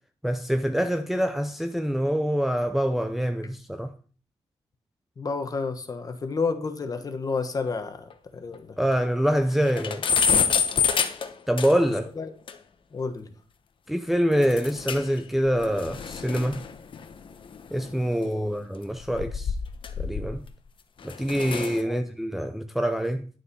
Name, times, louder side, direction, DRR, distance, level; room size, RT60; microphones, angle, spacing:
voice 1, 0.2-3.9 8.8-10.0 11.5-12.1 13.9-16.6 17.7-19.5 20.0-20.4 21.0-23.3, equal, ahead, 0.5 m, -25 dB
voice 2, 5.2-8.8 12.2-12.3 12.9-13.3 18.2-18.5 21.8-22.1, left 4 dB, 30° left, 1.2 m, -31 dB
sound 1, 7.7-7.8 8.1-8.2 8.5-8.6 9.0-9.1 9.4-12.0 12.5-12.6 14.4-15.2 15.5-18.1 18.9-20.5 21.0-21.8, left 6 dB, 45° left, 1.0 m, -28 dB
11.0 x 7.1 x 5.4 m
wide cardioid pair, 175°, 12 cm